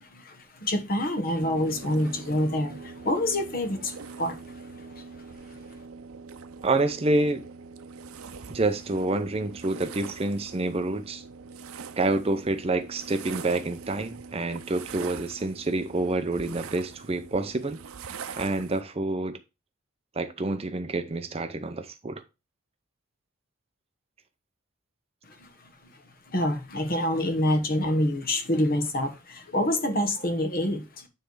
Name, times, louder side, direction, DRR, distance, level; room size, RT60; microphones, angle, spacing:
voice 1, 0.0-5.0 5.5-5.6 25.2-26.0 26.3-31.1, left 1 dB, 45° left, 1.2 m, -27 dB
sound 1, 1.4-18.8, right 5 dB, 85° right, 0.6 m, -43 dB
voice 2, 6.6-7.4 8.5-11.2 12.0-19.4 20.1-22.2, right 2 dB, 30° right, 0.5 m, -28 dB
9.3 x 3.3 x 4.6 m
head